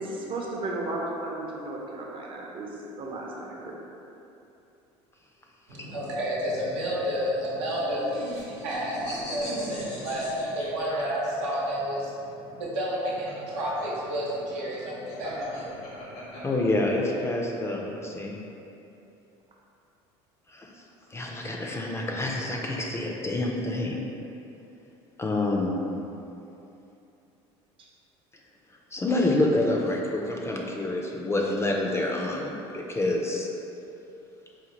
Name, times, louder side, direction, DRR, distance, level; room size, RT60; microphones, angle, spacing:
voice 1, 0.0-2.7 3.0-3.7 27.8-27.9, right 2 dB, 40° right, -2 dB, 0.6 m, -34 dB
voice 2, 5.7-16.5, equal, 85° right, -6 dB, 0.9 m, -31 dB
sound 1, 7.6-11.6 12.9-17.1, left 1 dB, 85° left, 1.0 m, -40 dB
voice 3, 16.4-18.4 20.5-20.7 21.1-24.0 25.2-25.8 28.9-33.5, left 2 dB, 20° left, 0 dB, 0.4 m, -27 dB
4.1 x 2.1 x 2.9 m, 2.8 s
supercardioid pair, 85°, 14 cm